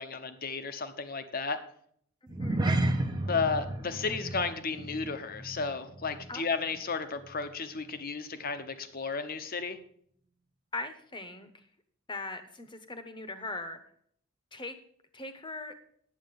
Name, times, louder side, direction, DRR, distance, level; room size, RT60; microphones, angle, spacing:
voice 1, 0.0-1.6 3.3-9.8, left 4 dB, 45° left, 10 dB, 0.9 m, -33 dB
sound 1, 2.3-6.9 7.2-7.5 7.9-8.0, right 1 dB, 20° right, 0.8 m, -33 dB
voice 2, 10.7-11.7 12.1-13.8 14.5-14.7 15.1-15.7, left 2 dB, 20° left, 9 dB, 1.0 m, -40 dB
9.7 x 7.9 x 5.3 m, 0.64 s
head